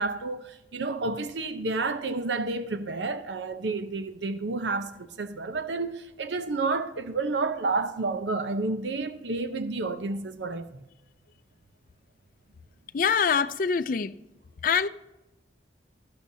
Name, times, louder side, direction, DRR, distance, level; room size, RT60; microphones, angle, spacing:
voice 1, 0.0-10.8, right 3 dB, 85° right, 0.7 m, -30 dB
voice 2, 12.9-14.1 14.6-14.9, left 6 dB, 50° left, 0.4 m, -24 dB
12.5 x 12.5 x 2.7 m
head